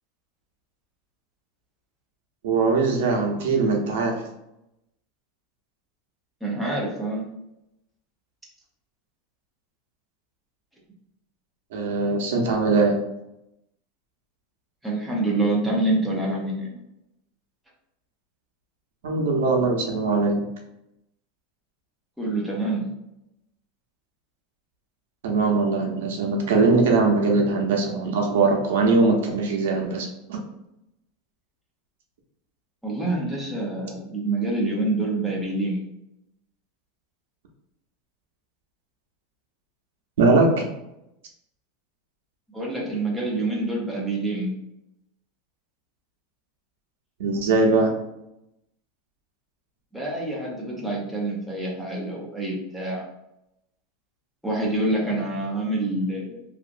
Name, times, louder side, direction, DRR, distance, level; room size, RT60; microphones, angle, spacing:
voice 1, 2.4-4.2 11.7-13.0 19.0-20.4 25.2-30.4 40.2-40.6 47.2-47.9, right 3 dB, 80° right, 1 dB, 0.6 m, -21 dB
voice 2, 6.4-7.3 14.8-16.8 22.2-22.9 32.8-35.8 42.5-44.5 49.9-53.0 54.4-56.4, right 2 dB, ahead, -4 dB, 0.5 m, -26 dB
2.8 x 2.5 x 2.5 m, 0.86 s
supercardioid pair, 175°, 0 cm